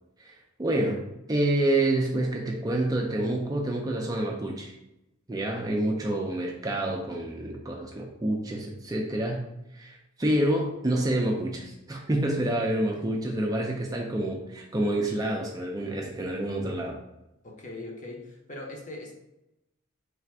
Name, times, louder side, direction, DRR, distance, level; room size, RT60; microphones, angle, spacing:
voice 1, 0.2-1.0 1.3-4.7 5.3-9.5 9.7-17.0, right 1 dB, 20° right, 0 dB, 0.4 m, -28 dB
voice 2, 17.4-19.1, left 2 dB, 35° left, 1 dB, 0.7 m, -40 dB
3.3 x 2.5 x 4.3 m, 0.88 s
head